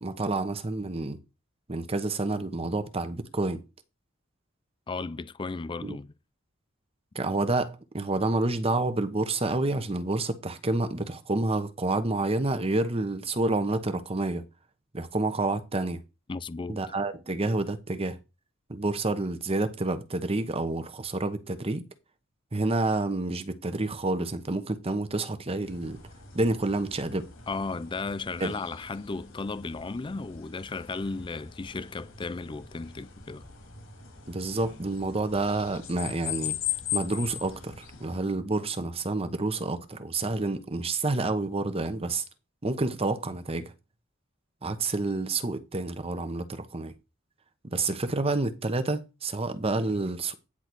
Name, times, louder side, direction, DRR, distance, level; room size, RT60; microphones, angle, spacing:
voice 1, 0.0-1.2 1.7-3.6 5.8-6.0 7.1-14.4 14.9-16.0 16.7-18.2 18.7-21.9 22.5-26.0 26.3-27.3 28.4-28.5 34.3-36.6 36.9-42.2 42.6-43.7 44.6-46.9 47.6-50.3, right 2 dB, 30° right, 1.0 m, -29 dB
voice 2, 4.9-6.1 16.3-16.8 27.5-33.4, left 3 dB, 25° left, 0.4 m, -35 dB
sound 1, 25.6-38.2, left 10 dB, 80° left, 3.3 m, -40 dB
9.9 x 4.0 x 6.1 m
head